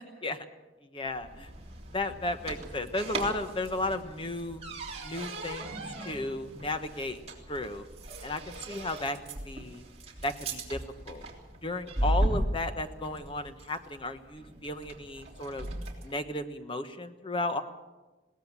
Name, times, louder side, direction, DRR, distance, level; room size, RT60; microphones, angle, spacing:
voice 1, 0.8-1.5 1.9-4.6 5.0-7.2 7.5-7.8 8.2-9.8 10.2-10.8 11.0-11.2 11.6-15.7 16.0-17.6, left 2 dB, 30° left, 8 dB, 1.3 m, -34 dB
sound 1, 1.1-16.2, right 1 dB, 35° right, 3.4 m, -37 dB
21.5 x 18.0 x 7.4 m, 1.2 s
head